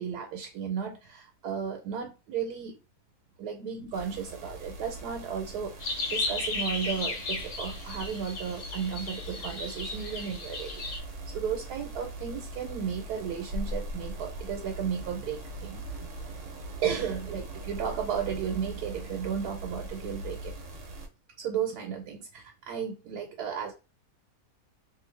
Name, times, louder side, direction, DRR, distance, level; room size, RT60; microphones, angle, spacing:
voice 1, 0.0-2.8 3.4-16.1 16.8-20.5 21.4-23.7, right 7 dB, 85° right, 1.1 m, -34 dB
sound 1, 3.9-21.1, right 1 dB, 60° right, 0.9 m, -41 dB
sound 2, 5.8-11.0, left 3 dB, 70° left, 1.2 m, -35 dB
2.6 x 2.6 x 3.1 m
omnidirectional pair, 1.7 m